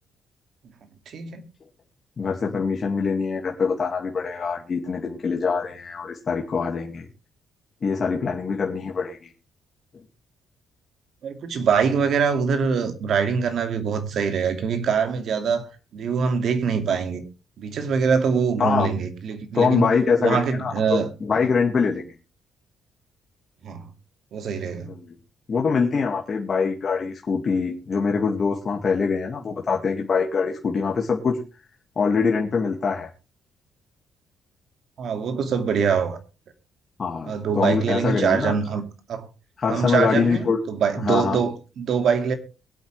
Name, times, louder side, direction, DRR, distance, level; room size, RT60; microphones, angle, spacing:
voice 1, 1.1-1.5 11.2-17.2 17.6-19.9 20.2-21.1 23.6-23.9 24.3-24.9 35.0-36.2 37.3-38.8 39.1-39.3 39.7-42.3, right 6 dB, 65° right, 2.3 m, -24 dB
voice 2, 2.2-7.1 7.8-9.3 18.6-18.9 19.5-22.0 24.9-25.2 25.5-31.4 32.0-33.1 37.0-38.5 39.6-40.6 41.0-41.4, left 5 dB, 45° left, 2.2 m, -24 dB
22.5 x 8.3 x 3.3 m
cardioid pair, 90°, 0 cm